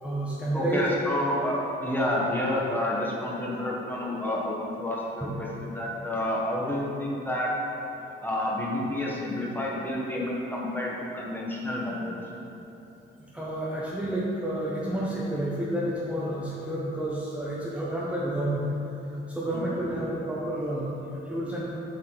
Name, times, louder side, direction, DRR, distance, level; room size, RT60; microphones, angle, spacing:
voice 1, 0.0-0.9 5.2-5.3 13.3-18.6 19.0-21.6, right 1 dB, 5° right, -8 dB, 0.9 m, -30 dB
voice 2, 0.5-7.5 8.2-12.2 19.5-19.7, left 1 dB, 10° left, -4 dB, 1.3 m, -29 dB
7.7 x 3.6 x 4.6 m, 3.0 s
cardioid pair, 90°, 20 cm